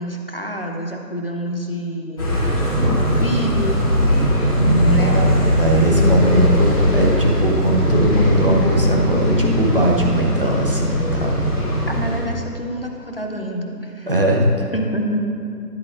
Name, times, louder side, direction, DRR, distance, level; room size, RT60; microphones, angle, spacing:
voice 1, 0.0-2.3 3.2-3.8 4.9-5.2 5.7-6.6 11.8-14.1 14.7-15.3, equal, 40° left, 2 dB, 0.6 m, -27 dB
sound 1, 2.2-12.2, equal, 20° left, 1.9 m, -19 dB
voice 2, 4.6-11.4 14.1-14.7, right 1 dB, 35° right, -1 dB, 0.8 m, -19 dB
10.5 x 7.5 x 2.5 m, 2.4 s
figure-of-eight pair, 165°, 48 cm